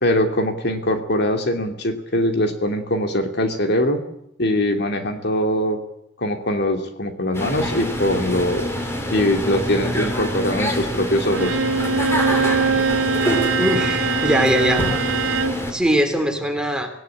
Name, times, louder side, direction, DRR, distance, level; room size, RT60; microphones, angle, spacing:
voice 1, 0.0-4.0 4.4-5.8 6.2-8.7 9.1-11.6, left 1 dB, 55° left, 5 dB, 2.7 m, -22 dB
sound 1, 7.3-15.7, equal, 15° left, 3.6 m, -26 dB
Bowed string instrument, 11.3-15.6, right 4 dB, 85° right, 2.1 m, -22 dB
voice 2, 13.6-14.8 15.6-16.9, equal, 5° right, 4 dB, 3.4 m, -21 dB
25.5 x 17.0 x 8.6 m, 0.75 s
head